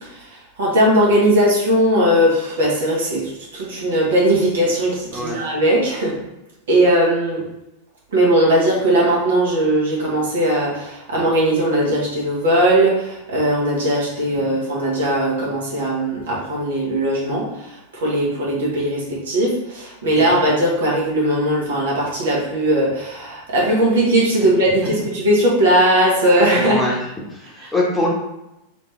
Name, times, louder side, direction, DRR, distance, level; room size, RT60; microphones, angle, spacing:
voice 1, 0.0-6.1 6.7-7.4 8.1-26.8, right 1 dB, 65° right, -4 dB, 1.4 m, -18 dB
voice 2, 5.1-5.4 20.2-20.4 24.4-24.5 26.5-27.0 27.3-28.1, left 2 dB, 10° left, -4 dB, 1.2 m, -24 dB
4.0 x 3.3 x 3.3 m, 0.92 s
figure-of-eight pair, 90°, 0 cm